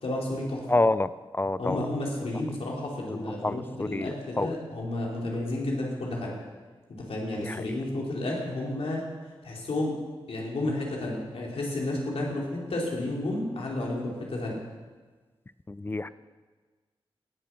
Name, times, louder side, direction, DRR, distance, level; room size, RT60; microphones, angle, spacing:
voice 1, 0.0-0.6 1.6-6.3 7.1-9.0 9.4-9.9 10.3-14.6, left 1 dB, 85° left, -2 dB, 3.1 m, -31 dB
voice 2, 0.7-1.8 3.0-4.5 7.4-7.6 15.7-16.1, left 2 dB, 20° left, 15 dB, 0.4 m, -28 dB
17.5 x 7.4 x 5.8 m, 1.4 s
wide cardioid pair, 85°, 10 cm